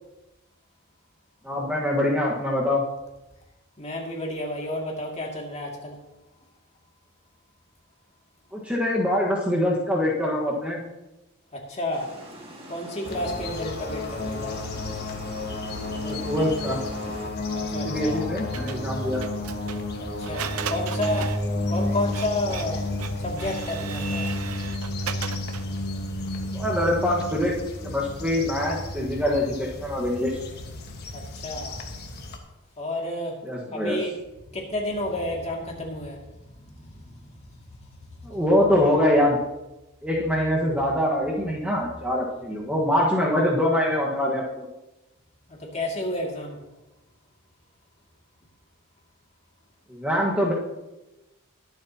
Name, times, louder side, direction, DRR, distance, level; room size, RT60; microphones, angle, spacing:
voice 1, 1.4-2.8 8.5-10.9 16.0-16.8 17.8-19.2 26.5-27.5 27.8-30.4 33.4-34.0 38.2-39.4 40.0-44.7 49.9-50.5, left 1 dB, 5° right, -3 dB, 1.5 m, -24 dB
voice 2, 3.8-6.0 11.5-12.1 12.7-14.6 17.5-18.3 20.0-21.3 21.6-22.9 23.2-24.3 31.1-31.8 32.8-33.4 33.7-34.1 34.5-37.9 38.2-38.4 45.5-46.6, left 1 dB, 30° left, -1 dB, 2.4 m, -31 dB
Water, 11.9-17.3, right 1 dB, 25° right, 1.8 m, -44 dB
sound 1, 13.0-32.4, left 2 dB, 50° left, 1.4 m, -32 dB
Printer, 18.5-25.8, right 7 dB, 75° right, 0.7 m, -37 dB
21.5 x 7.6 x 2.9 m, 1.0 s
head